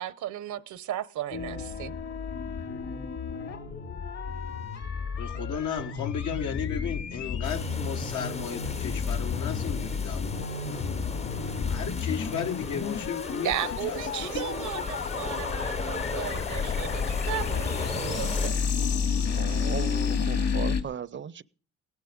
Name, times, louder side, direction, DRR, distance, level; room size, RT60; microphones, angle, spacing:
voice 1, 0.0-2.0 13.4-18.6, right 12 dB, 75° right, 0.8 m, -35 dB
sound 1, 1.3-20.8, left 6 dB, 60° left, 2.2 m, -31 dB
voice 2, 5.2-10.9 11.7-14.3, left 7 dB, 80° left, 1.5 m, -35 dB
sound 2, 7.4-18.5, left 3 dB, 20° left, 0.6 m, -38 dB
voice 3, 19.3-21.4, right 8 dB, 40° right, 0.6 m, -37 dB
17.0 x 11.0 x 5.1 m
cardioid pair, 90°, 30 cm